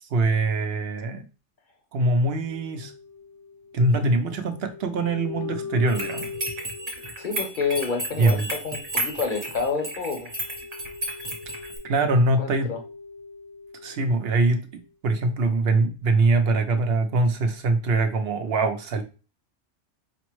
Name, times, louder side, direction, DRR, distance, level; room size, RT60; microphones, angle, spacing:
voice 1, 0.0-1.3 1.9-2.9 3.7-6.3 8.2-8.5 11.8-12.7 13.8-19.0, right 2 dB, 65° right, 0.8 m, -23 dB
sound 1, 2.5-14.4 14.8-14.9, left 5 dB, 75° left, 1.1 m, -41 dB
sound 2, 5.9-11.8, right 1 dB, 45° right, 1.1 m, -33 dB
voice 2, 7.2-10.3 12.4-12.8, left 5 dB, 50° left, 0.8 m, -28 dB
5.1 x 2.1 x 3.1 m
omnidirectional pair, 1.2 m